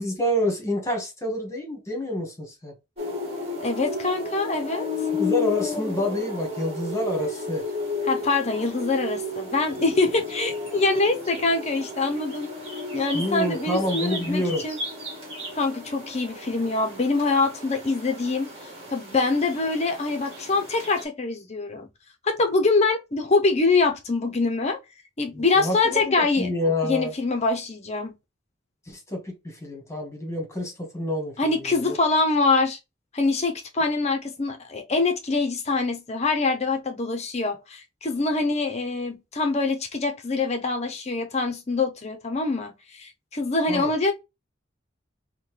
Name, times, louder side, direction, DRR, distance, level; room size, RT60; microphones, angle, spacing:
voice 1, 0.0-2.7 5.2-7.7 13.1-14.6 25.3-27.1 28.9-31.9 43.7-43.9, left 1 dB, 15° left, 1.4 m, -28 dB
sound 1, 3.0-21.0, left 2 dB, 35° right, 1.7 m, -33 dB
voice 2, 3.6-4.9 8.1-12.5 12.9-14.8 15.6-18.5 18.9-21.9 22.2-24.8 25.2-26.5 26.9-28.1 31.4-32.8 33.1-44.1, left 3 dB, 35° left, 0.6 m, -24 dB
5.4 x 2.2 x 3.1 m
head